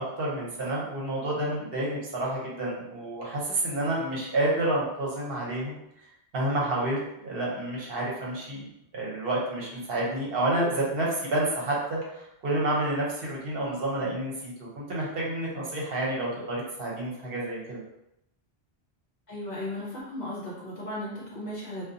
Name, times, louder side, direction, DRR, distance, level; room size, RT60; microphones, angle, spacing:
voice 1, 0.0-5.8 6.3-8.6 8.9-17.8, right 1 dB, 65° right, -4 dB, 0.9 m, -29 dB
voice 2, 19.3-21.8, left 1 dB, 50° left, -5 dB, 0.7 m, -36 dB
2.6 x 2.2 x 2.5 m, 0.81 s
omnidirectional pair, 1.1 m